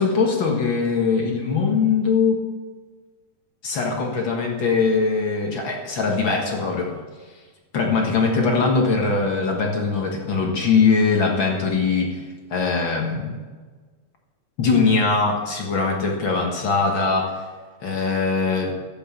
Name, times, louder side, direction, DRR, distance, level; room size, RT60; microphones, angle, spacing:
voice 1, 0.0-2.4 3.6-6.9 7.7-12.2 12.5-13.4 14.6-17.3 17.8-18.7, left 4 dB, 50° left, 1 dB, 1.7 m, -21 dB
12.5 x 8.4 x 7.2 m, 1.4 s
omnidirectional pair, 3.7 m